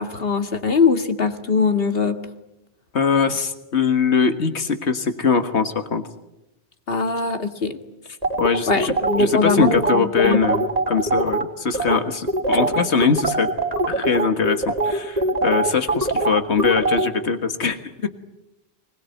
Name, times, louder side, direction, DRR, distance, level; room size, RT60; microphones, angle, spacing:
voice 1, 0.0-2.2 6.9-7.8 8.7-10.4, left 4 dB, 60° left, 7 dB, 2.1 m, -21 dB
voice 2, 2.9-6.0 8.4-8.9 9.2-13.5 13.9-18.1, left 5 dB, 85° left, 7 dB, 1.9 m, -22 dB
sound 1, 8.2-11.4 11.7-12.0 12.3-17.1, right 2 dB, 35° right, 4.1 m, -22 dB
25.0 x 20.5 x 9.2 m, 0.92 s
omnidirectional pair, 1.1 m